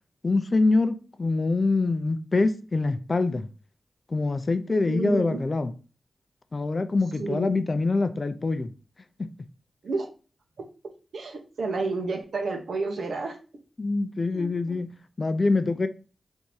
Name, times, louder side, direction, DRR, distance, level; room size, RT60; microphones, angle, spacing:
voice 1, 0.2-3.5 4.1-5.7 6.5-8.7 9.2-9.3 13.8-15.9, left 3 dB, 45° left, 0.5 m, -25 dB
voice 2, 4.8-5.4 7.2-7.6 9.8-10.1 11.1-13.4 14.3-14.8, right 3 dB, 80° right, 0.9 m, -30 dB
3.5 x 2.8 x 4.6 m
cardioid pair, 60°, 0 cm